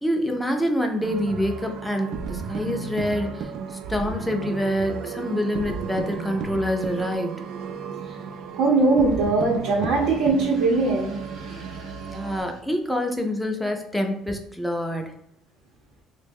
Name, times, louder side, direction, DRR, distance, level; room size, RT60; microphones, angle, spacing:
voice 1, 0.0-7.4 9.5-9.6 12.0-15.1, equal, 5° left, 3 dB, 0.4 m, -26 dB
sound 1, 1.0-12.4, right 5 dB, 65° right, 0.3 m, -34 dB
voice 2, 8.5-12.1, right 3 dB, 90° right, -4 dB, 0.7 m, -22 dB
3.0 x 2.1 x 3.4 m, 0.75 s
cardioid pair, 135°, 0 cm